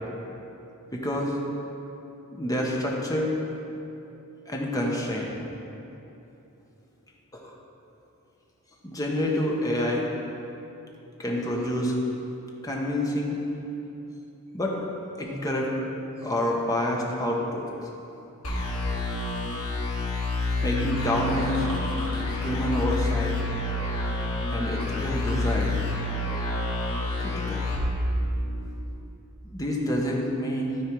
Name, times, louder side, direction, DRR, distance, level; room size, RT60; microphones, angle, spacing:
voice 1, 0.9-1.4 2.3-3.3 4.5-5.4 7.3-7.5 8.8-10.1 11.2-12.0 12.6-13.4 14.5-14.8 15.2-15.7 16.2-17.7 20.6-21.7 22.3-23.4 24.5-25.8 27.2-27.6 29.4-30.8, left 1 dB, 15° left, -2 dB, 1.0 m, -28 dB
sound 1, 18.4-28.7, left 2 dB, 85° left, 1.7 m, -28 dB
12.5 x 4.5 x 4.7 m, 2.9 s
head